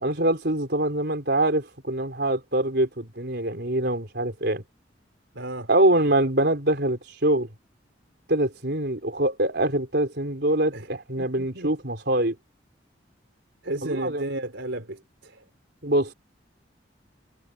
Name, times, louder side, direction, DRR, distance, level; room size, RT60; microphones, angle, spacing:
voice 1, 0.0-4.6 5.7-7.5 8.3-12.3 13.8-14.2 15.8-16.1, right 1 dB, 60° right, 4.8 m, -24 dB
voice 2, 5.3-5.7 10.7-10.9 11.2-11.7 13.6-15.4, right 1 dB, 75° right, 4.0 m, -33 dB
head